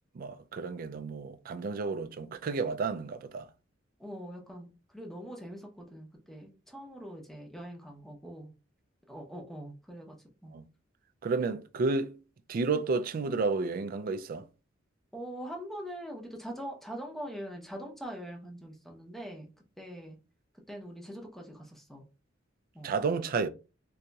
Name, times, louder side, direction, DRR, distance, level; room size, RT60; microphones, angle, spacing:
voice 1, 0.2-3.5 10.5-10.7 11.2-12.2 12.5-14.4 22.8-23.5, right 4 dB, 45° right, 0.3 m, -31 dB
voice 2, 4.0-8.5 9.1-10.2 10.4-10.5 15.1-19.5 19.8-20.2 20.7-22.0 22.7-22.9, equal, ahead, 0.7 m, -43 dB
3.9 x 2.7 x 2.3 m
head